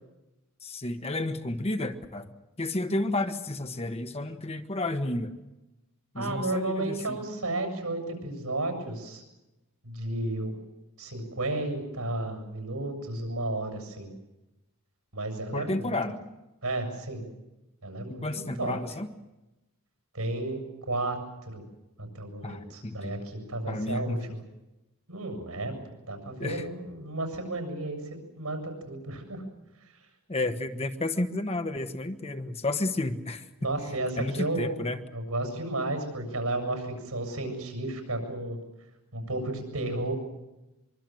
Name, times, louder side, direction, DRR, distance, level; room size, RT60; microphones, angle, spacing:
voice 1, 0.6-2.3 2.6-5.3 6.1-7.2 15.5-16.2 18.2-19.1 22.4-23.2 23.7-24.2 26.4-26.7 30.3-33.5 34.2-35.0, left 2 dB, 25° left, 7 dB, 1.2 m, -31 dB
voice 2, 6.2-9.2 9.8-10.5 11.0-14.1 15.1-15.9 16.6-17.2 17.8-18.3 18.6-18.8 20.1-21.2 21.5-21.6 22.0-24.4 25.1-25.7 26.1-28.0 28.4-29.4 33.6-34.8 35.1-38.6 39.1-40.1, right 2 dB, 80° right, 5 dB, 7.2 m, -32 dB
24.0 x 24.0 x 7.8 m, 1.0 s
head